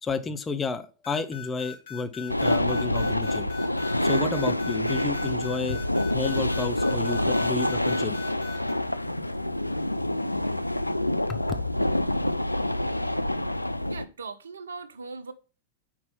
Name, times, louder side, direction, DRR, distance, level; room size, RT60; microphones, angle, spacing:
voice 1, 0.0-3.5 4.0-5.8 6.1-8.2, left 4 dB, 15° left, 0.8 m, -31 dB
sound 1, 1.0-8.7, left 13 dB, 55° left, 2.7 m, -42 dB
sound 2, 2.3-14.0, left 1 dB, 85° left, 0.3 m, -27 dB
voice 2, 13.8-15.3, right 4 dB, 70° right, 0.8 m, -39 dB
5.4 x 4.7 x 5.5 m
figure-of-eight pair, 90°, 0 cm